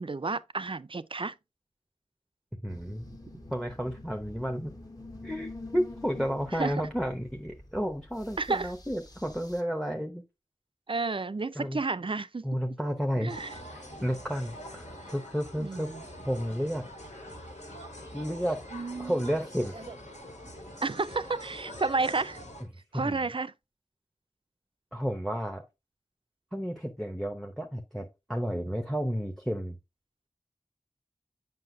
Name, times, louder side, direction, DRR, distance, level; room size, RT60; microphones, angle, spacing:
voice 1, 0.0-1.3 6.5-6.7 8.4-8.7 10.9-12.4 13.2-13.5 15.6-16.0 18.7-19.4 19.9-20.0 20.8-22.4 22.9-23.5, right 3 dB, 45° right, 0.4 m, -31 dB
voice 2, 2.6-3.1 3.5-4.7 5.2-10.2 11.5-11.8 12.4-13.4 13.7-15.9 16.2-16.9 18.1-18.6 19.0-19.9 22.9-23.3 24.9-25.6 26.5-29.8, equal, ahead, 0.8 m, -32 dB
sound 1, 2.7-9.6, left 2 dB, 30° left, 1.1 m, -46 dB
sound 2, 13.3-22.6, equal, 70° left, 1.9 m, -45 dB
7.6 x 5.6 x 2.6 m
wide cardioid pair, 45°, 13 cm